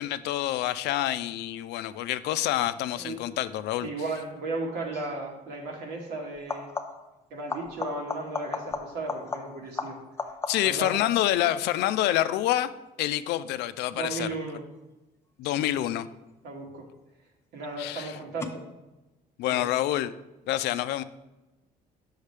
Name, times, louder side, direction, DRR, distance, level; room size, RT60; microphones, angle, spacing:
voice 1, 0.0-3.9 10.5-12.7 13.0-14.3 15.4-16.0 17.8-18.1 19.4-20.1 20.5-21.0, left 13 dB, 80° left, 13 dB, 0.4 m, -27 dB
voice 2, 3.0-3.3 3.8-6.7 7.3-10.0 10.6-11.0 13.9-14.6 15.4-15.7 16.4-16.9 17.5-18.7 19.4-19.7, right 2 dB, 80° right, 0 dB, 1.8 m, -35 dB
sound 1, 4.9-5.2 6.4-7.2 7.5-10.9 16.3-16.9 18.4-18.5, left 4 dB, 15° left, 0.7 m, -36 dB
8.2 x 6.3 x 3.3 m, 1.0 s
cardioid pair, 110°, 17 cm